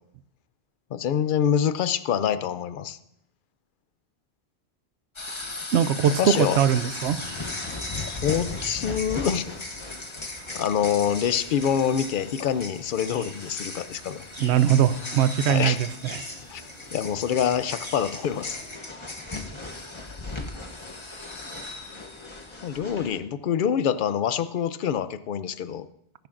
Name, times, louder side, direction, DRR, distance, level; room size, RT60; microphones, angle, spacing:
voice 1, 0.9-3.0 6.2-6.6 8.1-9.5 10.5-14.2 15.5-15.8 16.5-16.6 16.9-18.6 22.6-25.9, left 8 dB, 60° left, 13 dB, 0.7 m, -26 dB
sound 1, 5.2-23.2, left 2 dB, 30° left, 0.9 m, -37 dB
voice 2, 5.7-7.2 14.4-16.2, right 9 dB, 80° right, 14 dB, 0.9 m, -21 dB
sound 2, 5.8-18.8, right 2 dB, 45° right, 1.8 m, -50 dB
19.5 x 10.5 x 2.5 m, 0.72 s
omnidirectional pair, 1.1 m